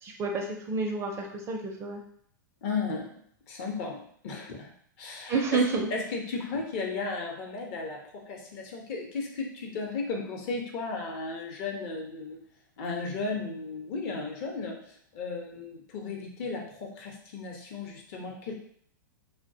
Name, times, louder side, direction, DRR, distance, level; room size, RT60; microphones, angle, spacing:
voice 1, 0.0-2.0 5.3-5.9, right 4 dB, 25° right, 1 dB, 0.4 m, -29 dB
voice 2, 2.6-3.1 3.5-4.7 5.0-5.6 5.9-12.4 12.8-14.8 15.1-18.5, left 4 dB, 45° left, 0 dB, 0.6 m, -35 dB
2.3 x 2.1 x 2.6 m, 0.63 s
figure-of-eight pair, 105°, 11 cm